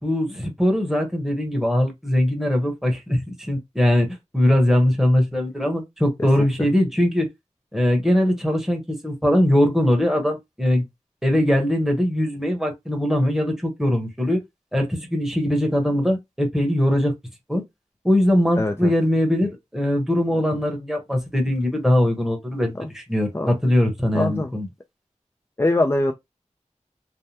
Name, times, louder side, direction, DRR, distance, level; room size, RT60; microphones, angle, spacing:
voice 1, 0.0-4.1 4.3-7.3 7.7-10.8 11.2-14.4 14.7-17.1 17.5-17.6 18.0-24.7, left 1 dB, 5° right, 1.0 m, -21 dB
voice 2, 18.6-18.9 22.8-22.9 23.3-23.5 24.1-24.5 25.6-26.1, left 2 dB, 20° left, 0.4 m, -22 dB
3.3 x 2.1 x 2.7 m
wide cardioid pair, 60°, 13 cm